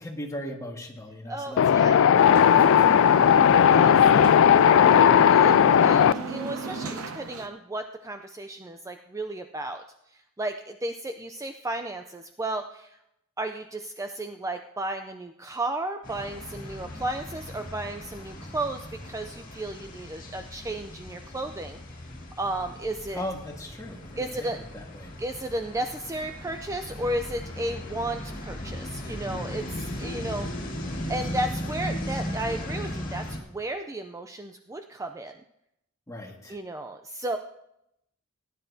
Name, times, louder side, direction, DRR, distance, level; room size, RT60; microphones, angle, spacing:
voice 1, 0.0-3.4 23.1-25.1 31.3-31.4 36.1-36.6, left 1 dB, 15° left, 0 dB, 1.5 m, -39 dB
voice 2, 1.3-2.1 3.7-9.8 10.1-13.0 13.4-21.8 22.4-23.2 24.2-24.6 25.2-30.7 31.1-35.3 36.5-37.4, right 1 dB, 15° right, 7 dB, 0.4 m, -34 dB
Wind, 1.6-6.1, left 8 dB, 65° left, 0.3 m, -17 dB
sound 1, 2.2-7.5, right 4 dB, 85° right, 0.8 m, -34 dB
sound 2, 16.0-33.4, left 1 dB, 40° left, 2.0 m, -37 dB
17.5 x 9.8 x 2.7 m, 0.81 s
head